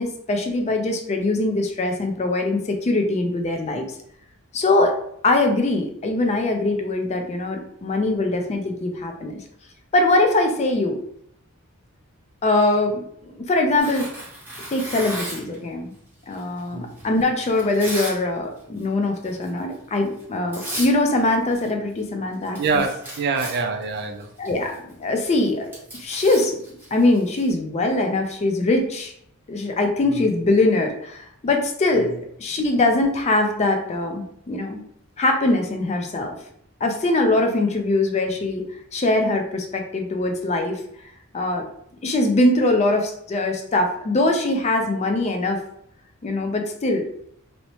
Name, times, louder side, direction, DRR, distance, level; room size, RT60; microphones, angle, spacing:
voice 1, 0.0-3.9 4.5-4.9 5.2-9.4 9.9-11.0 12.4-14.1 14.7-15.9 16.3-22.8 24.4-25.7 26.0-26.6 26.9-29.1 29.5-32.1 32.4-34.8 35.2-36.3 36.8-38.6 38.9-40.8 41.3-41.7 42.0-45.6 46.2-47.1, left 2 dB, 30° left, 4 dB, 0.3 m, -22 dB
Tearing, 13.8-15.6 16.3-18.2 18.5-18.8 19.2-19.5 20.2-20.3 20.5-20.9 21.2-22.1 22.3-27.5, right 1 dB, 10° right, 0.9 m, -35 dB
voice 2, 22.6-24.3 30.0-30.2 31.9-32.1, right 4 dB, 50° right, 5 dB, 0.3 m, -25 dB
2.7 x 2.0 x 2.9 m, 0.71 s
head